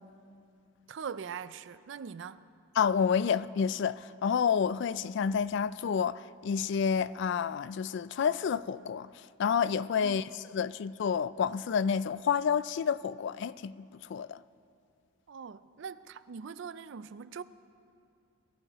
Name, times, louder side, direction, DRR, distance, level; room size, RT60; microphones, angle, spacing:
voice 1, 0.9-2.5 10.0-10.3 15.3-17.4, right 6 dB, 60° right, 0.4 m, -42 dB
voice 2, 2.8-9.1 9.4-10.2 10.5-14.4, left 7 dB, 60° left, 0.3 m, -29 dB
22.0 x 15.5 x 3.0 m
head